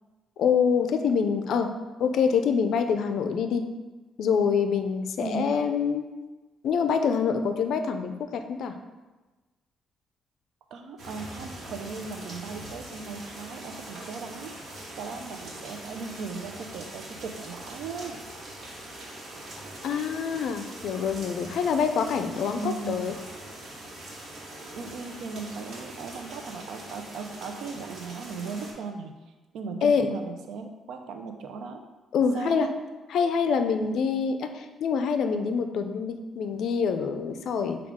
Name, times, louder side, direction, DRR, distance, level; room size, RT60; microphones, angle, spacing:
voice 1, 0.4-1.7 2.0-3.6 4.2-6.1 6.6-8.7 19.8-23.1 29.8-30.0 32.1-32.7 33.1-37.8, left 6 dB, 75° left, 7 dB, 0.4 m, -25 dB
voice 2, 5.2-5.7 10.7-14.5 15.0-18.2 22.5-23.1 24.7-29.2 29.5-31.8 32.3-32.7, right 4 dB, 80° right, 5 dB, 0.4 m, -37 dB
sound 1, 11.0-28.7, right 1 dB, 55° right, 1.1 m, -42 dB
6.0 x 2.3 x 3.6 m, 1.2 s
cardioid pair, 90°, 0 cm